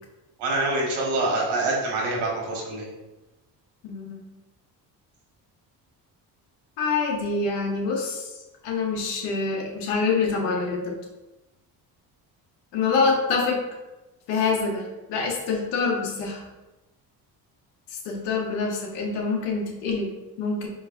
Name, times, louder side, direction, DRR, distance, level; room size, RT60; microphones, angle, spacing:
voice 1, 0.4-2.9, right 2 dB, 80° right, -2 dB, 1.4 m, -25 dB
voice 2, 3.8-4.2 6.8-11.0 12.7-13.6 14.3-16.5 17.9-20.7, left 4 dB, 90° left, 1 dB, 0.9 m, -26 dB
4.6 x 3.2 x 2.4 m, 1.1 s
cardioid pair, 90°, 42 cm